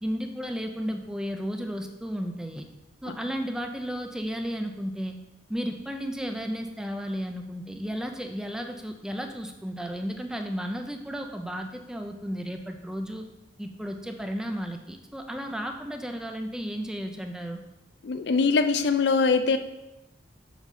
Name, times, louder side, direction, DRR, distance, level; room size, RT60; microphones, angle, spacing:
voice 1, 0.0-2.7 3.0-5.2 5.5-13.2 13.6-17.6, equal, 5° right, 4 dB, 0.4 m, -33 dB
voice 2, 18.0-19.6, left 4 dB, 60° left, 9 dB, 0.4 m, -22 dB
7.2 x 3.9 x 5.6 m, 0.94 s
head